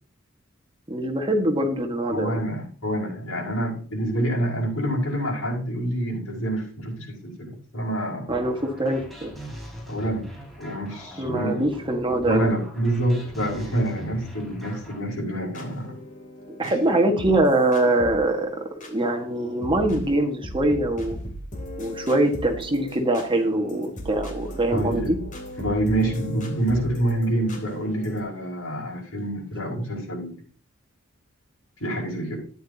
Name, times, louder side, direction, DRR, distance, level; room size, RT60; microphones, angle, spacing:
voice 1, 0.9-2.4 8.3-9.3 11.2-12.6 16.6-21.2 21.8-25.2, right 1 dB, 25° right, 3 dB, 1.6 m, -23 dB
voice 2, 2.1-8.3 9.9-10.3 10.6-11.6 12.2-15.9 16.6-16.7 24.7-25.1 25.6-30.4 31.8-32.4, right 1 dB, 85° left, -2 dB, 5.7 m, -27 dB
sound 1, 8.3-15.0, equal, ahead, 4.2 m, -41 dB
sound 2, 14.6-28.2, equal, 40° left, 2.9 m, -38 dB
13.0 x 10.0 x 2.9 m, 0.41 s
head